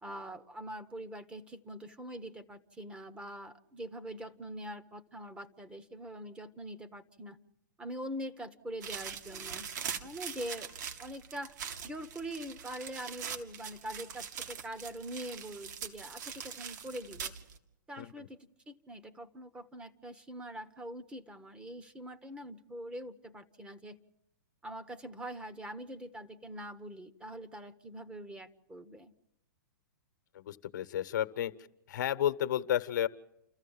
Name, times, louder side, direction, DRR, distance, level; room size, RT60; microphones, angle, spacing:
voice 1, 0.0-7.4 7.8-9.7 10.0-10.7 11.0-11.6 11.8-17.3 17.9-18.4 18.7-24.0 24.6-29.1, right 1 dB, 10° right, 11 dB, 1.0 m, -43 dB
sound 1, 8.8-17.6, right 7 dB, 60° right, 2.3 m, -42 dB
voice 2, 18.0-18.3 30.3-31.5 31.9-33.1, left 11 dB, 65° left, 11 dB, 1.1 m, -32 dB
29.5 x 14.5 x 7.2 m, 0.87 s
hypercardioid pair, 130°, 11 cm